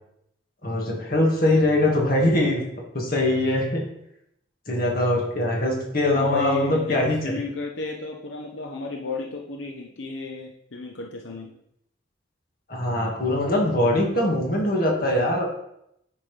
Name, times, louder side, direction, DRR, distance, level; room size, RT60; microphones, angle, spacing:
voice 1, 0.6-2.6 2.9-3.9 4.7-7.2 12.7-15.5, left 1 dB, 50° left, -1 dB, 2.0 m, -22 dB
voice 2, 6.1-11.5, left 3 dB, 85° left, 0 dB, 0.9 m, -33 dB
9.8 x 5.7 x 3.4 m, 0.79 s
head